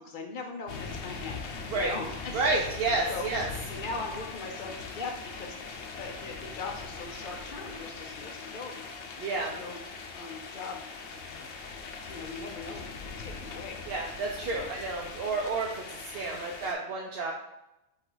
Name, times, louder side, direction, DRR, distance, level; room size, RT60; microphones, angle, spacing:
voice 1, 0.0-1.5 1.7-2.6 3.1-3.3 3.7-8.9 9.3-9.8 10.1-10.8 11.3-11.6 12.0-13.8 14.4-14.7 16.3-16.5, left 3 dB, 55° left, 2 dB, 0.7 m, -40 dB
sound 1, 0.7-16.7, left 4 dB, 85° left, 0.9 m, -41 dB
voice 2, 2.3-3.5 9.2-9.5 13.9-17.3, right 3 dB, 70° right, 0 dB, 0.8 m, -30 dB
5.4 x 2.4 x 3.8 m, 0.90 s
omnidirectional pair, 1.1 m